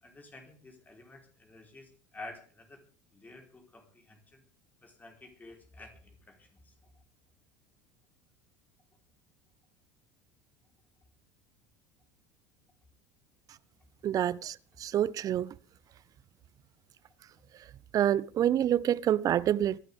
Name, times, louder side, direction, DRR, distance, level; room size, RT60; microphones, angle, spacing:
voice 1, 0.0-2.8 3.1-4.4 4.8-6.7, left 2 dB, 20° left, 4.0 m, -50 dB
voice 2, 14.0-15.5 17.9-19.8, right 11 dB, 40° right, 0.7 m, -27 dB
24.5 x 12.0 x 3.6 m
figure-of-eight pair, 70°, 9 cm